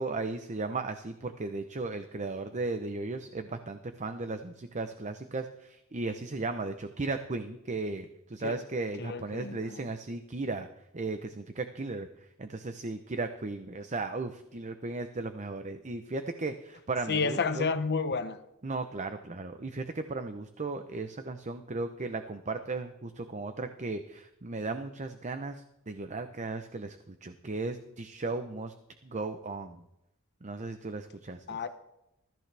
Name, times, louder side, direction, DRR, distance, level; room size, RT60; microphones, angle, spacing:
voice 1, 0.0-10.7 10.9-12.1 12.4-17.7 18.6-28.7 29.0-29.8 30.4-31.6, right 3 dB, 35° right, 0.8 m, -36 dB
voice 2, 9.0-9.8 17.1-18.4 31.5-31.7, left 4 dB, 50° left, 0.9 m, -30 dB
21.0 x 14.0 x 3.4 m
head